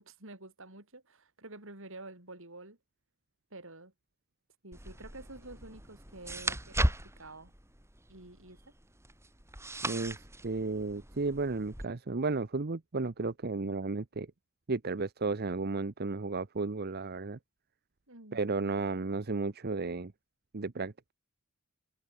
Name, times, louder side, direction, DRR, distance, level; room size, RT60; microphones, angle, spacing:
voice 1, 0.0-2.8 3.5-3.9 4.6-7.5 8.1-8.7 18.1-18.5, right 2 dB, 60° right, 6.5 m, -49 dB
sound 1, 4.7-11.9, right 1 dB, 10° right, 5.9 m, -37 dB
voice 2, 9.9-14.3 14.7-17.4 18.3-20.1 20.5-21.1, right 3 dB, 45° right, 0.8 m, -33 dB
head